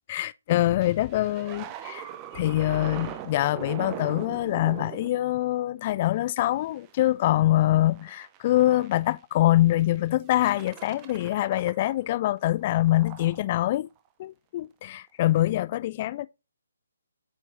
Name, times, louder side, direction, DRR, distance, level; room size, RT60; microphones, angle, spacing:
voice 1, 0.1-13.9 14.2-16.3, left 15 dB, 30° left, 0.3 m, -24 dB
sound 1, 0.8-6.0 6.7-7.0 7.4-9.1 9.7-10.0 10.3-12.1 12.4-13.5 15.2-15.4, right 11 dB, 20° right, 0.5 m, -41 dB
8.4 x 4.5 x 2.5 m
figure-of-eight pair, 140°, 0 cm